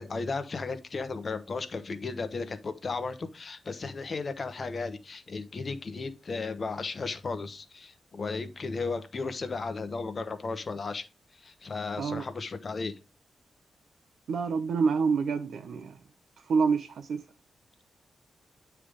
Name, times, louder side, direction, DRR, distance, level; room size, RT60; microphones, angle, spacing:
voice 1, 0.0-11.1 11.4-13.0, left 4 dB, 40° left, 1.0 m, -35 dB
voice 2, 14.3-16.0 16.4-17.2, right 5 dB, 75° right, 0.6 m, -27 dB
9.4 x 3.4 x 5.0 m
wide cardioid pair, 140°, 0 cm